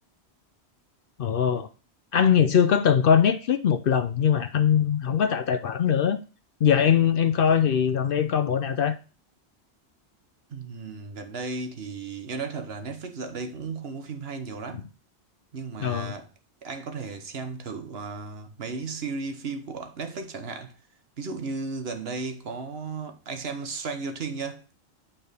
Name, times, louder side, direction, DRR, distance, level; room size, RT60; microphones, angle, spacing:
voice 1, 1.2-1.7 2.1-6.2 6.6-9.0 15.8-16.1, left 8 dB, 60° left, 0.7 m, -21 dB
voice 2, 10.5-14.8 15.5-16.3 16.6-20.7 21.2-24.6, right 4 dB, 65° right, 1.2 m, -35 dB
8.8 x 4.3 x 3.3 m
omnidirectional pair, 1.2 m